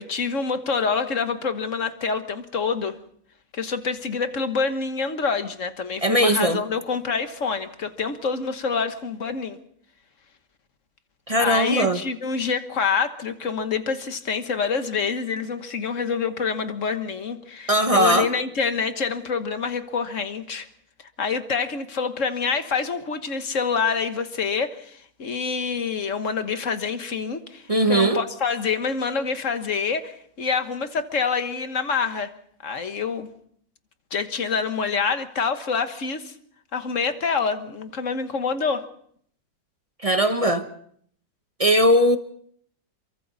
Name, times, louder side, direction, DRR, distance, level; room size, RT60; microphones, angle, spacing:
voice 1, 0.0-3.0 3.5-9.6 11.4-20.7 21.2-27.6 27.9-32.3 32.6-33.3 34.1-36.3 36.7-38.8, left 5 dB, 45° left, 1.5 m, -26 dB
voice 2, 6.0-6.6 11.3-12.0 17.7-18.3 27.7-28.2 40.0-40.7 41.6-42.2, right 1 dB, 30° right, 0.7 m, -19 dB
28.0 x 23.5 x 4.1 m
omnidirectional pair, 2.0 m